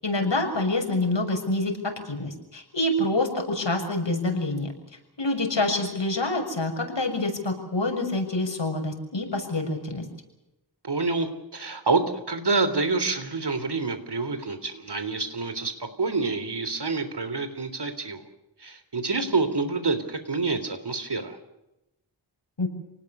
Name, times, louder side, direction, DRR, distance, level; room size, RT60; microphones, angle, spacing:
voice 1, 0.0-4.7 5.2-10.0 22.6-22.7, left 2 dB, 70° left, 4 dB, 6.6 m, -26 dB
voice 2, 10.8-18.2 18.6-21.4, right 3 dB, 60° right, 10 dB, 3.6 m, -27 dB
29.5 x 19.5 x 6.8 m, 0.93 s
wide cardioid pair, 45°, 45 cm